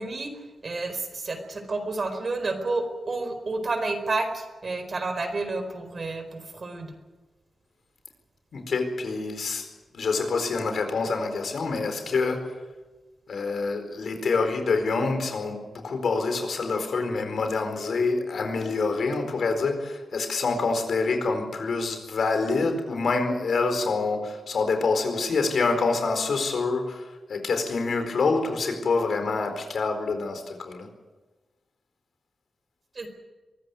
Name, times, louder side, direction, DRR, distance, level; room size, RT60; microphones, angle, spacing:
voice 1, 0.0-6.9 32.9-33.1, right 3 dB, 50° right, 7 dB, 4.5 m, -30 dB
voice 2, 8.5-9.7 9.9-12.5 13.3-30.9, left 4 dB, 75° left, 6 dB, 4.5 m, -26 dB
23.5 x 14.5 x 9.5 m, 1.2 s
cardioid pair, 75°, 0 cm